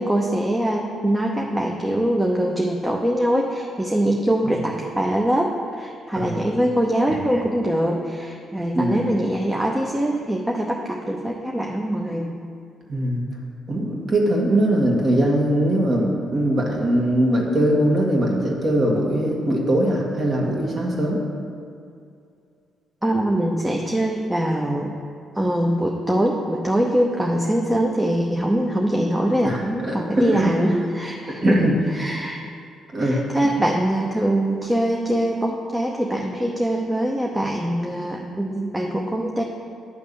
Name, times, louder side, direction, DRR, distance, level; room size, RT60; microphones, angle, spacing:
voice 1, 0.0-12.3 23.0-24.9 25.3-31.6 31.9-32.4 33.0-39.4, right 1 dB, 10° right, 0 dB, 0.7 m, -23 dB
voice 2, 12.9-13.2 13.7-21.2 29.4-30.5 31.3-31.8 32.9-33.2, right 1 dB, 45° right, -1 dB, 1.7 m, -21 dB
10.0 x 3.4 x 6.8 m, 2.4 s
cardioid pair, 90°, 0 cm